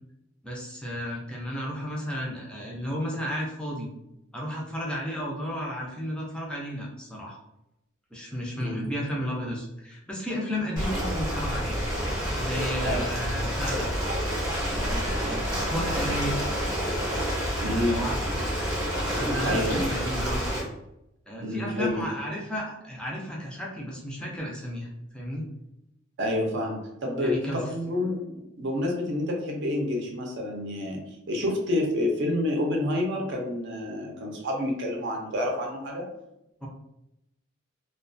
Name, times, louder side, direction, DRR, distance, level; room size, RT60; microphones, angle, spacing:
voice 1, 0.4-3.9 4.3-7.4 8.1-11.9 12.4-13.9 14.7-16.4 17.9-18.5 19.1-20.5 21.3-24.9 25.1-25.4 27.2-27.7 36.6-36.7, equal, 5° left, -3 dB, 0.4 m, -33 dB
Ocean, 10.8-20.6, equal, 20° right, 0.7 m, -28 dB
voice 2, 17.6-18.0 19.4-19.8 21.4-22.1 26.2-31.0 31.3-36.0, left 1 dB, 60° right, 1 dB, 0.6 m, -28 dB
2.3 x 2.2 x 2.5 m, 0.86 s
head